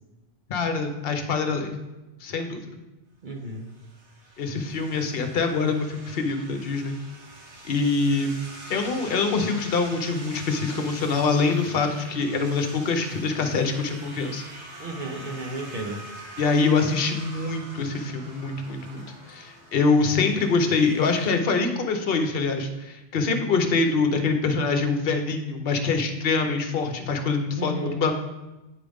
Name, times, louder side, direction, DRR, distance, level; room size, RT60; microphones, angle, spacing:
voice 1, 0.5-1.7 2.2-2.6 4.4-7.0 7.6-8.3 8.7-14.4 16.4-28.1, left 4 dB, 55° left, 6 dB, 1.0 m, -24 dB
voice 2, 3.2-3.7 14.8-16.0 27.6-28.0, right 2 dB, 50° right, 2 dB, 0.8 m, -33 dB
sound 1, 3.4-21.4, right 2 dB, 70° right, 1.5 m, -44 dB
9.1 x 5.0 x 3.5 m, 1.0 s
omnidirectional pair, 1.2 m